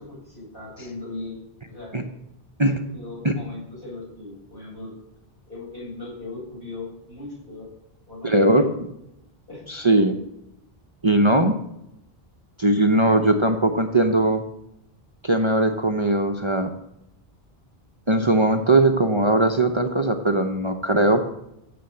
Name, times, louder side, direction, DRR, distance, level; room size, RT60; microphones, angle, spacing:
voice 1, 0.0-1.3 1.7-2.0 2.9-4.9 5.5-7.7 8.1-8.7 9.5-9.7, left 2 dB, 60° left, -4 dB, 7.6 m, -38 dB
voice 2, 8.2-8.7 9.7-10.1 11.0-11.6 12.6-14.4 15.2-16.7 18.1-21.2, right 2 dB, 30° right, 6 dB, 0.9 m, -19 dB
15.5 x 6.9 x 7.8 m, 0.82 s
omnidirectional pair, 1.0 m